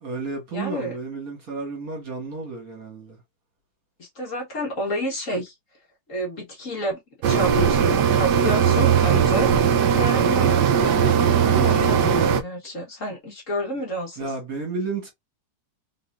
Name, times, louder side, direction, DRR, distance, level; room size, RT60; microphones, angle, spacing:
voice 1, 0.0-3.2 14.2-15.1, right 4 dB, 50° right, 2.1 m, -32 dB
voice 2, 0.5-1.0 4.0-5.5 6.1-7.0 7.2-9.5 9.9-14.3, equal, 45° left, 1.7 m, -30 dB
sound 1, 7.2-12.4, right 7 dB, 75° right, 1.3 m, -19 dB
3.9 x 3.7 x 2.4 m
omnidirectional pair, 2.0 m